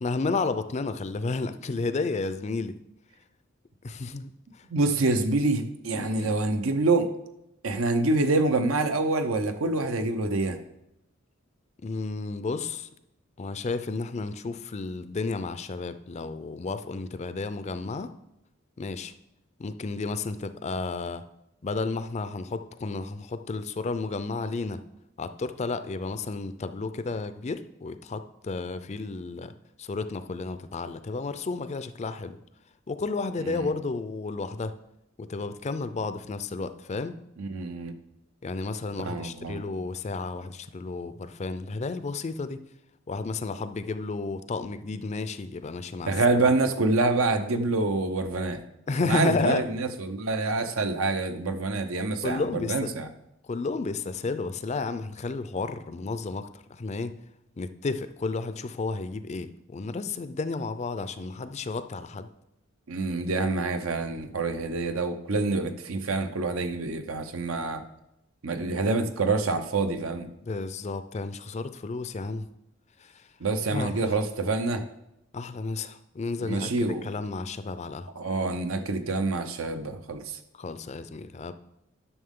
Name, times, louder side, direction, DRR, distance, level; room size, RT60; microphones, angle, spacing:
voice 1, 0.0-2.8 3.8-4.7 5.9-6.3 11.8-12.9 13.4-18.1 18.8-19.1 19.6-21.2 21.6-24.8 25.2-29.5 29.8-32.4 32.9-34.7 35.2-37.2 38.4-42.6 43.1-46.1 46.4-46.5 48.9-49.7 52.2-52.9 53.4-57.2 57.6-62.3 70.4-72.5 73.0-73.3 73.7-74.1 75.3-78.1 80.5-81.5, left 3 dB, 35° left, 11 dB, 0.4 m, -32 dB
voice 2, 4.7-7.1 7.6-10.6 33.4-33.7 37.4-37.9 39.0-39.6 46.1-48.6 49.0-53.1 62.9-67.8 68.4-70.3 73.4-74.8 76.4-77.0 78.2-80.4, right 3 dB, 85° right, 8 dB, 0.8 m, -26 dB
11.0 x 6.3 x 3.7 m, 0.86 s
head